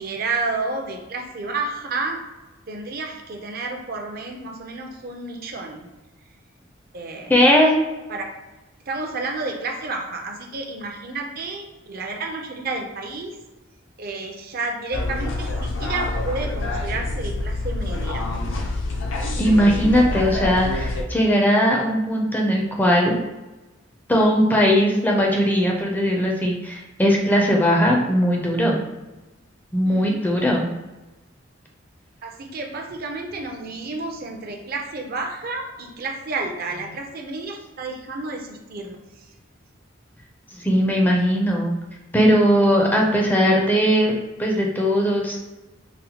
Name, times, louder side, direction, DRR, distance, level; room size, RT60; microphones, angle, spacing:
voice 1, 0.0-2.2 2.7-5.9 6.9-7.3 8.1-8.2 8.9-13.4 14.0-18.3 29.8-30.2 32.2-39.3, right 3 dB, 50° right, 3 dB, 0.5 m, -31 dB
voice 2, 7.3-7.7 19.4-23.2 24.1-28.8 29.7-30.7 40.5-41.8 42.1-45.4, equal, 10° left, -1 dB, 0.4 m, -19 dB
sound 1, 14.9-21.0, left 2 dB, 75° left, 0.5 m, -26 dB
4.1 x 2.1 x 2.8 m, 1.1 s
head